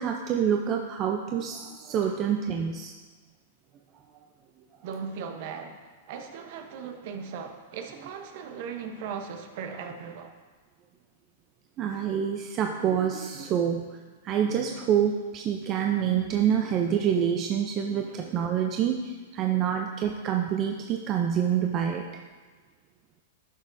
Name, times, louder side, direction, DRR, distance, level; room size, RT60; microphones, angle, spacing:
voice 1, 0.0-2.9 4.1-4.2 11.8-14.0 14.2-22.2, right 8 dB, 30° right, 3 dB, 0.4 m, -27 dB
voice 2, 4.8-10.3, right 6 dB, 55° right, 6 dB, 0.8 m, -38 dB
11.0 x 6.3 x 2.6 m, 1.4 s
supercardioid pair, 145°, 0 cm